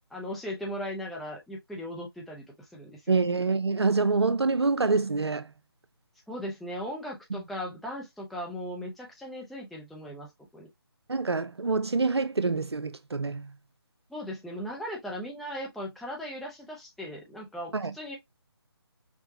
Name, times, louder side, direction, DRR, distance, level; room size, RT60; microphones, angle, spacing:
voice 1, 0.1-2.4 2.7-3.1 6.3-10.7 14.1-18.2, equal, ahead, 0.6 m, -38 dB
voice 2, 3.1-5.5 7.3-7.4 11.1-13.5 17.7-17.9, right 4 dB, 80° right, 0.5 m, -26 dB
5.9 x 2.1 x 2.8 m
figure-of-eight pair, 150°, 14 cm